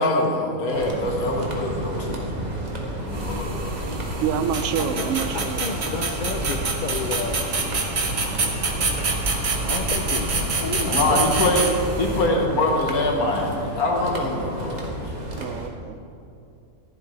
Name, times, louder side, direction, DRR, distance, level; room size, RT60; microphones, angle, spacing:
voice 1, 0.0-2.2 3.0-3.7 4.0-4.2 10.9-15.0, left 1 dB, 85° left, 1 dB, 1.9 m, -24 dB
sound 1, 0.7-15.7, right 1 dB, 30° right, 1.5 m, -31 dB
sound 2, 3.1-12.3, right 3 dB, 50° right, 1.4 m, -27 dB
voice 2, 4.2-5.8 15.4-16.0, right 8 dB, 70° right, 11 dB, 0.8 m, -27 dB
voice 3, 5.3-7.4 9.6-11.3, left 5 dB, 60° left, 3 dB, 0.5 m, -31 dB
14.5 x 11.5 x 3.3 m, 2.7 s
omnidirectional pair, 1.5 m